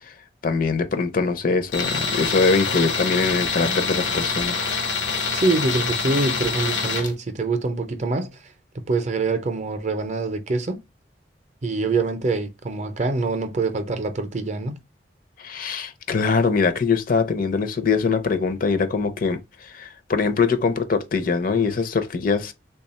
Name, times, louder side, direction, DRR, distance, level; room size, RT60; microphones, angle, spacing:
voice 1, 0.4-4.6 15.4-22.5, left 4 dB, 50° left, 0.5 m, -22 dB
Tools, 1.7-7.1, left 4 dB, 85° left, 0.8 m, -25 dB
voice 2, 5.3-8.3 8.7-10.8 11.6-14.8, right 3 dB, 40° right, 0.5 m, -25 dB
3.4 x 2.3 x 4.1 m
head